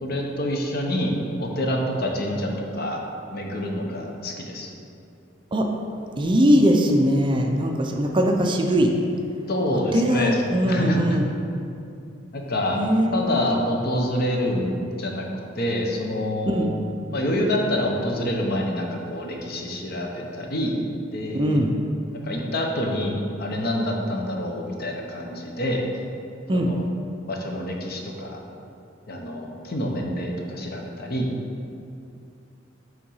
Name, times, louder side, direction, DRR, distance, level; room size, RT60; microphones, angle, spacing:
voice 1, 0.0-3.0 3.3-4.7 9.5-11.0 12.3-12.8 13.1-15.2 15.5-16.7 17.1-20.7 21.1-21.6 22.2-25.8 26.5-26.8 27.3-28.4 29.1-31.3, left 1 dB, 55° left, 1 dB, 0.8 m, -27 dB
voice 2, 6.2-8.9 9.9-11.3 12.7-13.6 16.5-16.7 21.3-21.7 26.5-26.7, equal, 25° right, 2 dB, 0.4 m, -21 dB
5.7 x 3.6 x 5.5 m, 2.6 s
head